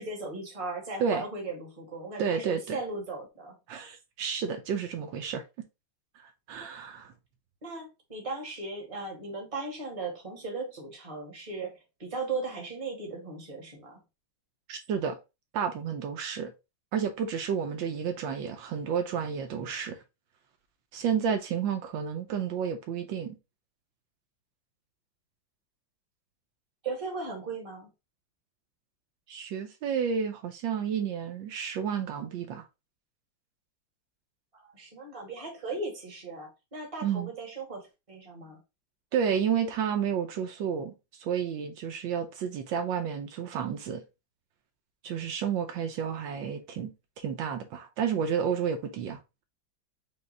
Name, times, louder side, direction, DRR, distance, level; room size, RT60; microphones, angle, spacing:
voice 1, 0.0-3.5 7.6-14.0 26.8-27.9 34.5-38.6, right 3 dB, 20° right, 1.3 m, -37 dB
voice 2, 2.2-2.8 3.7-5.4 6.2-7.1 14.7-15.2 15.5-16.5 16.9-20.0 20.9-23.4 29.3-32.6 37.0-37.3 39.1-40.9 41.2-44.0 45.0-46.9 47.2-49.2, right 7 dB, 75° right, 1.3 m, -31 dB
5.2 x 2.3 x 4.0 m
omnidirectional pair, 2.1 m